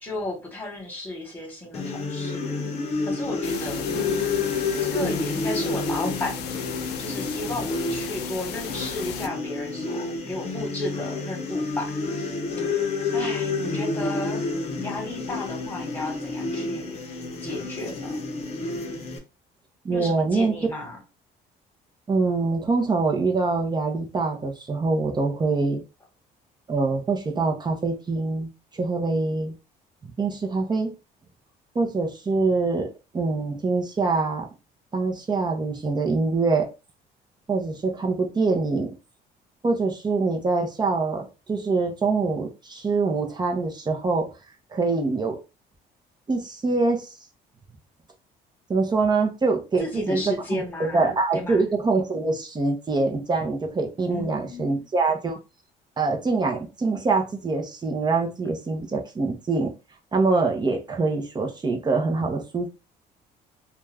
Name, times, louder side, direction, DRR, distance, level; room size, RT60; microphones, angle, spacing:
voice 1, 0.0-2.4 3.0-4.4 4.8-6.5 7.0-11.9 12.7-14.4 14.8-17.0 17.4-18.2 19.9-21.0 49.8-51.6 54.1-54.8, left 2 dB, 10° left, -1 dB, 1.3 m, -33 dB
sound 1, 1.7-19.2, left 3 dB, 40° left, 0.7 m, -29 dB
sound 2, 3.4-9.3, left 9 dB, 80° left, 0.4 m, -36 dB
voice 2, 19.8-20.5 22.1-25.8 26.7-29.6 30.0-30.9 31.7-34.5 34.9-36.7 37.5-38.9 39.6-44.3 44.7-45.4 46.3-47.1 48.7-50.2 50.8-55.4 56.0-59.7 60.1-62.7, right 3 dB, 25° right, 3 dB, 0.7 m, -24 dB
2.5 x 2.3 x 3.3 m, 0.29 s
cardioid pair, 110°, 17 cm